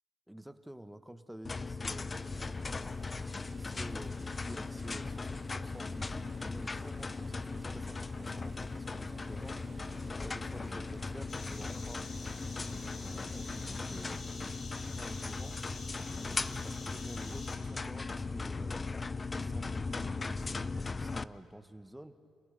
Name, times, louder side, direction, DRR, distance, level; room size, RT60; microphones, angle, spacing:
voice 1, 0.3-2.1 3.6-9.6 10.2-12.1 12.6-14.2 14.9-15.6 16.1-18.9 19.3-22.2, right 1 dB, 5° right, 10 dB, 1.1 m, -50 dB
sound 1, 1.4-21.2, left 3 dB, 25° left, 0.5 m, -38 dB
sound 2, 2.1-14.3, right 3 dB, 30° right, 1.2 m, -56 dB
sound 3, 11.3-17.6, left 3 dB, 45° left, 4.3 m, -48 dB
26.5 x 17.5 x 6.8 m, 2.3 s
cardioid pair, 90°, 0 cm